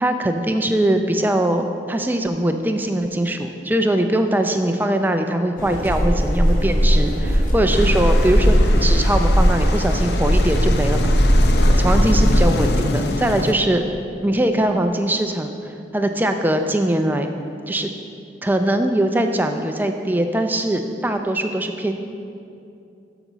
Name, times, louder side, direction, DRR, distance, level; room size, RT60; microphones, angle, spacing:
voice 1, 0.0-11.2 11.8-13.9 14.2-17.3 17.7-17.9 18.4-21.9, right 1 dB, 10° right, 6 dB, 0.4 m, -21 dB
sound 1, 5.6-12.4, equal, 45° left, 1.1 m, -17 dB
sound 2, 7.7-13.5, left 2 dB, 65° left, 0.5 m, -27 dB
12.5 x 6.0 x 4.0 m, 2.6 s
head